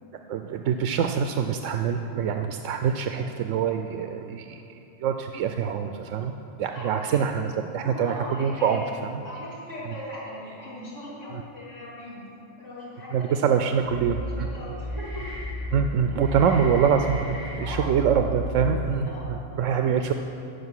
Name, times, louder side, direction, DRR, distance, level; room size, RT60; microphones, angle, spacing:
voice 1, 0.3-4.6 5.0-9.2 13.1-14.5 15.7-20.1, right 7 dB, 85° right, 6 dB, 1.0 m, -25 dB
voice 2, 6.7-7.3 7.8-8.9 9.2-12.2 12.6-13.4 14.1-15.3 16.1-16.2 17.6-18.1 18.9-20.1, left 1 dB, 80° left, -8 dB, 3.5 m, -40 dB
sound 1, 13.8-19.1, left 1 dB, 50° right, 2.9 m, -33 dB
15.0 x 5.3 x 9.7 m, 2.8 s
omnidirectional pair, 1.3 m